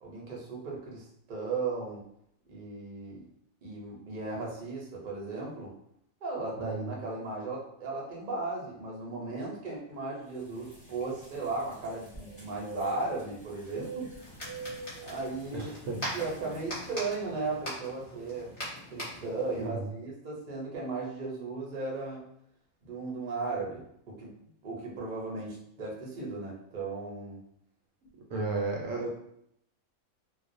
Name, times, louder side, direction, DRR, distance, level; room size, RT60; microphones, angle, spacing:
voice 1, 0.0-2.0 2.5-3.2 3.6-5.8 6.2-14.1 15.0-15.7 16.1-18.5 18.9-22.2 22.8-24.3 24.6-27.4 28.3-28.5 29.0-29.2, right 3 dB, 45° right, -3 dB, 0.6 m, -36 dB
sound 1, 10.4-17.0, right 3 dB, 5° left, 0.7 m, -46 dB
sound 2, 14.2-19.7, equal, 30° left, 0.9 m, -41 dB
voice 2, 15.5-16.2 19.6-19.9 28.3-29.0, right 3 dB, 70° right, -1 dB, 0.9 m, -34 dB
2.4 x 2.1 x 2.5 m, 0.73 s
omnidirectional pair, 1.5 m